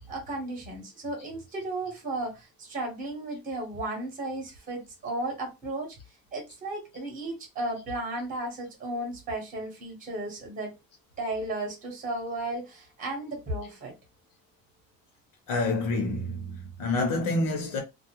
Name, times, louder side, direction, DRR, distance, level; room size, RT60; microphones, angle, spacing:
voice 1, 0.1-6.0 6.3-10.7 11.2-13.9, right 2 dB, 25° right, 0.9 m, -34 dB
voice 2, 15.5-17.8, left 2 dB, 70° left, 0.9 m, -28 dB
2.5 x 2.0 x 2.9 m
cardioid pair, 180°, 34 cm